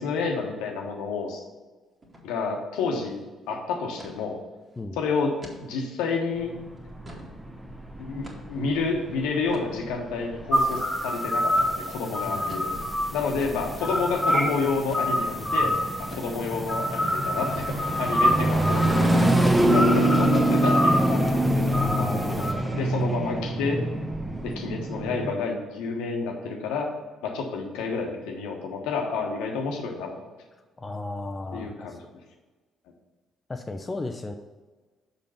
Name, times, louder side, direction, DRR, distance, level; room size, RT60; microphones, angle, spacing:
voice 1, 0.0-1.4 2.2-3.2 3.5-4.4 5.0-6.5 8.0-12.8 13.1-21.3 22.0-23.9 24.4-26.9 27.2-30.2 31.5-32.0, left 4 dB, 65° left, 2 dB, 1.1 m, -30 dB
sound 1, 2.0-2.3 2.6-2.7 3.0-3.3 4.0-4.2 4.7-4.8 5.4-5.6 6.1-6.2 6.8-7.3 8.2-8.6 9.5-9.7 10.7-10.8 11.6-11.8 12.5-12.7 13.4-13.6 14.2-14.4 14.9-15.2 15.5-15.7 16.1-16.6, equal, 30° right, 1.9 m, -44 dB
sound 2, 6.4-25.4, right 1 dB, 10° right, 1.1 m, -26 dB
sound 3, 10.5-22.5, equal, 5° left, 1.2 m, -27 dB
voice 2, 12.2-12.6 18.3-19.0 21.7-22.9 30.8-32.0 33.5-34.3, left 2 dB, 25° left, 5 dB, 0.6 m, -35 dB
6.8 x 5.1 x 5.6 m, 1.3 s
figure-of-eight pair, 45°, 0 cm